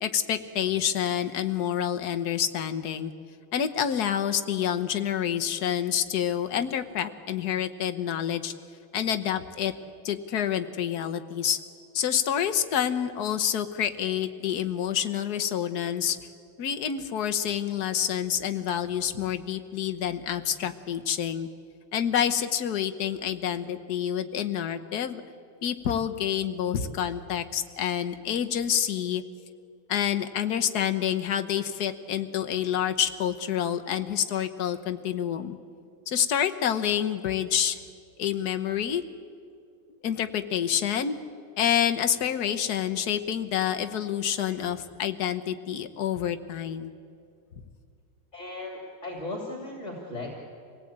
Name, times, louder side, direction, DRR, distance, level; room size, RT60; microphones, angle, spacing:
voice 1, 0.0-3.1 3.5-8.5 8.9-9.7 10.0-11.6 11.9-16.2 16.6-21.5 21.9-25.2 25.6-29.2 29.9-35.6 36.1-37.8 38.2-39.0 40.0-41.2 41.6-46.9, left 9 dB, 55° left, 8 dB, 1.4 m, -28 dB
voice 2, 48.3-50.5, left 2 dB, 35° left, 0 dB, 2.9 m, -37 dB
26.0 x 18.0 x 8.8 m, 2.4 s
omnidirectional pair, 2.2 m